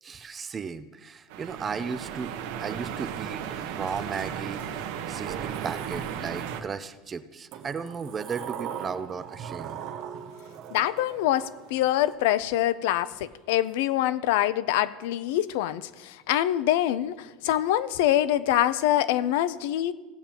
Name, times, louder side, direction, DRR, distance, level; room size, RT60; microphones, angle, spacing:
voice 1, 0.0-2.3 2.6-9.8, right 6 dB, 20° right, 12 dB, 0.4 m, -35 dB
sound 1, 1.3-6.6, right 9 dB, 75° right, 1.0 m, -35 dB
Sliding door, 5.2-6.7 7.5-12.1, right 9 dB, 45° right, 0.9 m, -40 dB
voice 2, 10.7-19.9, left 13 dB, 75° left, 17 dB, 0.4 m, -25 dB
17.0 x 8.6 x 2.9 m, 1.2 s
cardioid pair, 165°, 0 cm